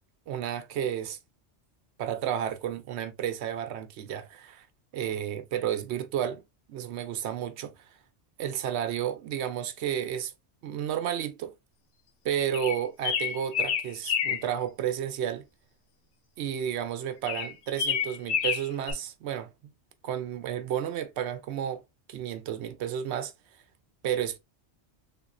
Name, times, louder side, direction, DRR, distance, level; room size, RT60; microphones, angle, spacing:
voice 1, 0.3-1.2 2.0-4.7 4.9-6.4 6.7-7.9 8.4-10.3 10.6-11.5 12.2-15.5 16.4-19.5 20.0-21.8 22.1-23.3 24.0-24.4, right 9 dB, 75° right, 0.8 m, -32 dB
sound 1, 12.5-14.5 17.3-18.9, left 7 dB, 75° left, 0.9 m, -28 dB
3.5 x 3.0 x 2.4 m
omnidirectional pair, 1.1 m